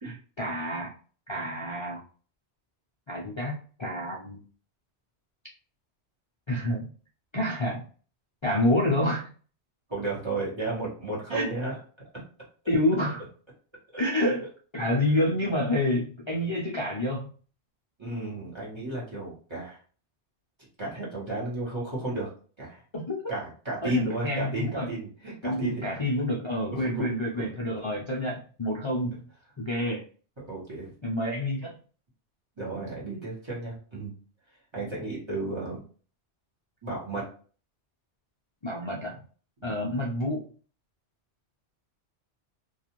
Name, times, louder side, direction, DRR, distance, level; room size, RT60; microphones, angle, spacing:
voice 1, 0.0-0.9 1.3-2.0 3.1-4.4 6.5-6.9 7.3-7.8 8.4-9.3 11.3-11.5 12.7-13.2 14.0-14.4 14.7-17.3 22.9-23.3 23.8-24.9 25.4-29.3 29.6-30.0 31.0-31.8 38.6-39.2 39.6-40.5, left 1 dB, 50° left, -4 dB, 0.3 m, -28 dB
voice 2, 9.9-11.8 12.1-12.2 13.9-14.0 15.1-15.2 18.0-19.8 20.8-22.3 22.6-22.8 23.3-26.0 26.7-27.1 27.4-27.5 30.4-30.9 32.6-34.1 34.7-35.8 36.8-37.3 39.6-39.7, right 2 dB, 25° right, -6 dB, 1.1 m, -33 dB
2.4 x 2.3 x 2.9 m, 0.41 s
omnidirectional pair, 1.2 m